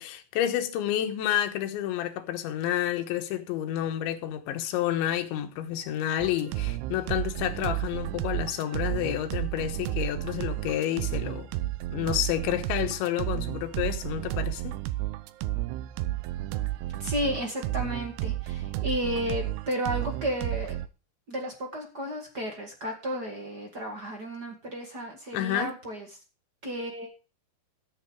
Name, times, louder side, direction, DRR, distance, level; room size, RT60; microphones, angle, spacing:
voice 1, 0.0-11.5 11.9-14.8 25.3-25.7, left 11 dB, 80° left, 3.5 m, -29 dB
sound 1, 6.2-20.9, right 15 dB, 80° right, 2.5 m, -32 dB
voice 2, 17.0-20.8 21.3-26.1 26.6-27.1, equal, 45° right, 1.3 m, -33 dB
13.5 x 7.9 x 4.8 m
omnidirectional pair, 5.2 m